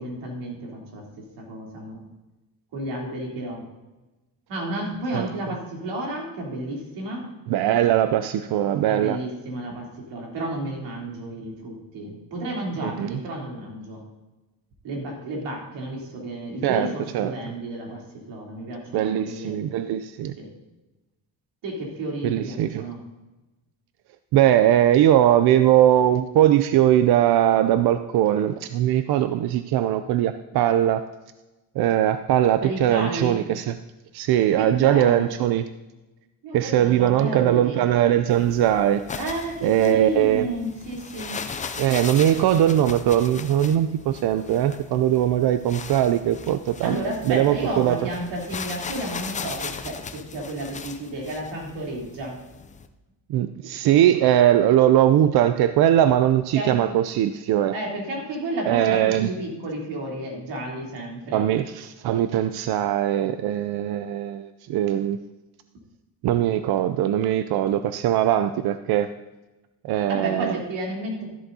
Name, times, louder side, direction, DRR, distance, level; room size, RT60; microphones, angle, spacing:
voice 1, 0.0-2.0 2.7-3.6 4.5-7.3 8.8-14.0 14.8-18.0 18.3-19.6 20.4-20.5 21.6-23.0 32.6-33.4 34.5-35.3 36.4-37.8 39.2-41.3 46.8-52.4 56.5-57.0 57.7-61.4 70.1-71.2, right 1 dB, 85° right, -2 dB, 3.4 m, -32 dB
voice 2, 7.5-9.2 12.8-13.2 16.6-16.9 17.1-17.3 18.9-20.3 22.2-22.8 24.3-31.0 31.8-33.8 34.1-35.6 36.5-39.0 39.6-40.5 41.8-47.0 47.3-48.0 53.3-57.7 58.7-59.3 61.3-65.2 66.2-69.1 69.8-70.6, right 11 dB, 60° right, 10 dB, 0.5 m, -20 dB
sound 1, 38.3-52.9, left 5 dB, 20° left, 0.3 m, -38 dB
13.5 x 11.5 x 2.7 m, 1.1 s
cardioid pair, 175°, 42 cm